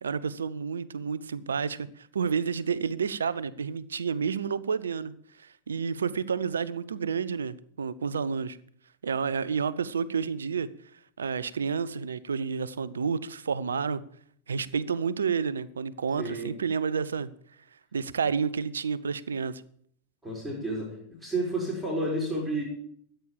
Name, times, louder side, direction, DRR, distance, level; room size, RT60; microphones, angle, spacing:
voice 1, 0.0-5.1 5.4-8.6 9.0-10.7 11.2-14.0 14.5-17.3 17.9-19.6, right 6 dB, 70° right, 0.7 m, -30 dB
voice 2, 16.2-16.5 20.2-20.9 21.2-22.6, right 1 dB, 10° right, 4.8 m, -30 dB
13.5 x 9.0 x 7.4 m
figure-of-eight pair, 90°, 0 cm